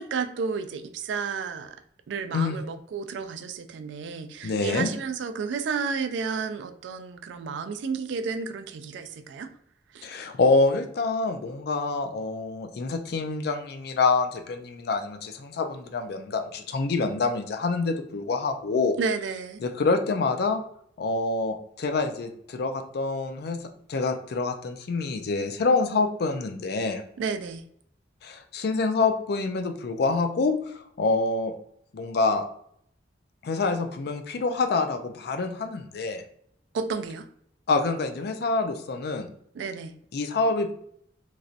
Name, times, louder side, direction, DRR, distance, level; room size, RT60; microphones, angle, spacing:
voice 1, 0.0-1.8 2.1-9.5 9.9-10.1 19.0-19.6 27.2-27.6 36.7-37.3 39.5-39.9, right 5 dB, 75° right, 9 dB, 0.3 m, -31 dB
voice 2, 4.4-4.9 10.0-19.0 19.6-20.6 21.0-23.6 23.9-27.0 28.2-30.6 31.0-31.5 31.9-32.5 33.4-36.2 37.7-39.3 40.1-40.7, left 3 dB, 60° left, 7 dB, 0.4 m, -26 dB
3.1 x 2.6 x 2.4 m, 0.68 s
head